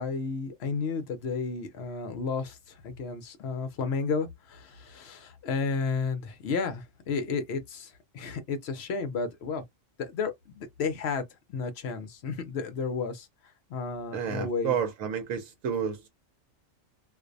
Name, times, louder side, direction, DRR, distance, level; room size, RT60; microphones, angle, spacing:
voice 1, 0.0-9.6 10.0-11.2 11.5-13.3 13.7-14.8, left 4 dB, 65° left, 0.8 m, -32 dB
voice 2, 14.1-16.1, right 7 dB, 80° right, 1.0 m, -30 dB
2.5 x 2.0 x 2.5 m
omnidirectional pair, 1.4 m